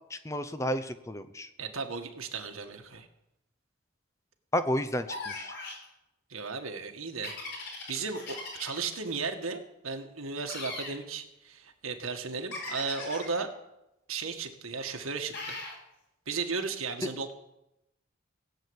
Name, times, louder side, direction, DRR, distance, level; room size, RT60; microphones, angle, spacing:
voice 1, 0.1-1.5 4.5-5.5, equal, 15° left, 11 dB, 0.7 m, -31 dB
voice 2, 1.6-3.1 6.3-7.3 7.9-13.5 14.1-15.6 16.3-17.4, right 4 dB, 90° right, 4 dB, 1.9 m, -35 dB
sound 1, 5.1-5.8 7.2-9.0 10.5-11.0 12.5-13.4 15.3-15.8, left 3 dB, 55° left, 5.0 m, -39 dB
18.0 x 8.4 x 8.2 m, 0.90 s
head